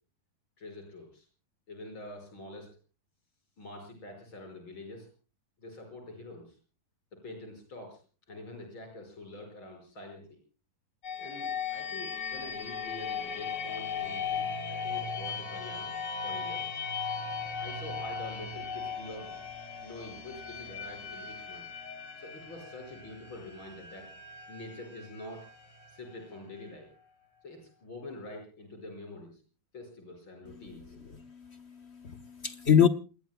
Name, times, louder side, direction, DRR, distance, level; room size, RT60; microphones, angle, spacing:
voice 1, 0.6-1.3 1.7-2.7 3.6-5.1 5.6-6.6 7.1-8.0 8.3-10.4 11.2-15.9 16.2-16.7 17.6-19.4 19.8-21.7 22.2-24.1 24.5-25.5 25.9-26.9 27.4-29.4 29.7-30.9, left 2 dB, 75° left, 6.4 m, -46 dB
sound 1, 11.0-26.7, left 6 dB, 55° left, 3.8 m, -38 dB
voice 2, 31.1-32.9, left 8 dB, 40° left, 1.0 m, -26 dB
28.5 x 20.5 x 2.2 m
omnidirectional pair, 2.2 m